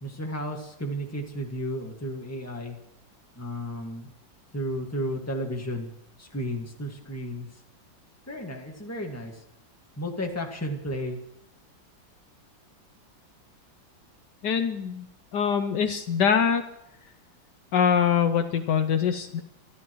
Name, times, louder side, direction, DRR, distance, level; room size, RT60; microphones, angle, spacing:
voice 1, 0.0-2.8 3.3-4.1 4.5-5.9 6.2-7.5 8.3-9.3 10.0-11.2, equal, 10° left, 1 dB, 1.6 m, -33 dB
voice 2, 14.4-15.1 15.3-16.6 17.7-19.4, left 7 dB, 70° left, 7 dB, 1.3 m, -23 dB
25.0 x 11.0 x 3.1 m, 0.84 s
omnidirectional pair, 2.1 m